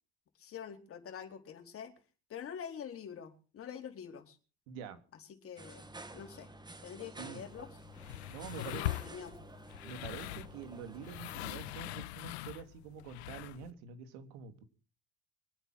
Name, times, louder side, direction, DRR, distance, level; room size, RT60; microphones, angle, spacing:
voice 1, 0.4-1.9 2.3-4.4 5.4-6.5 6.8-7.7 8.6-9.4, left 8 dB, 45° left, 6 dB, 4.1 m, -46 dB
voice 2, 4.7-5.0 7.2-7.4 8.3-8.8 9.8-14.6, right 7 dB, 75° right, 9 dB, 3.2 m, -46 dB
sound 1, 5.6-12.1, right 2 dB, 15° right, 2.2 m, -51 dB
sound 2, 7.4-13.7, left 18 dB, 85° left, 0.7 m, -42 dB
24.0 x 9.1 x 6.1 m, 0.37 s
hypercardioid pair, 85°, 32 cm